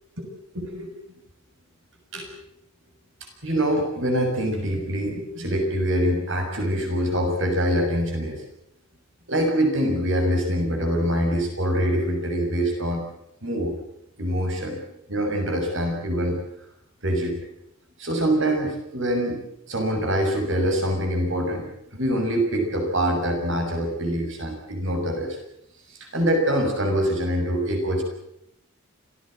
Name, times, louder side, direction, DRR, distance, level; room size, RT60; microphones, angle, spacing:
voice 1, 0.5-0.9 2.1-2.3 3.4-8.4 9.3-13.0 13.4-13.8 14.2-14.8 15.1-16.4 17.0-17.4 18.0-25.4 25.9-28.0, equal, 60° right, 3 dB, 6.5 m, -24 dB
27.5 x 18.0 x 7.7 m, 0.80 s
head